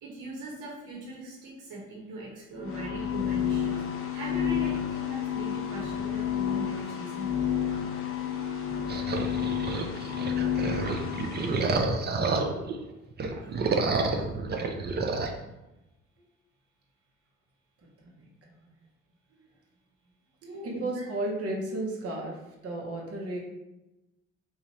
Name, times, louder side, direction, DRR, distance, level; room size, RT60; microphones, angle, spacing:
voice 1, 0.0-3.8 4.1-7.4 13.4-13.5 20.4-21.1, right 2 dB, 85° right, -4 dB, 1.1 m, -40 dB
sound 1, 2.5-11.6, left 9 dB, 45° left, 0.7 m, -30 dB
sound 2, 8.9-12.8 13.1-15.3, right 3 dB, 35° right, 0.5 m, -29 dB
voice 2, 20.8-22.4 22.6-23.4, right 2 dB, 50° right, -2 dB, 0.9 m, -32 dB
2.9 x 2.4 x 4.0 m, 0.98 s
supercardioid pair, 70°, 31 cm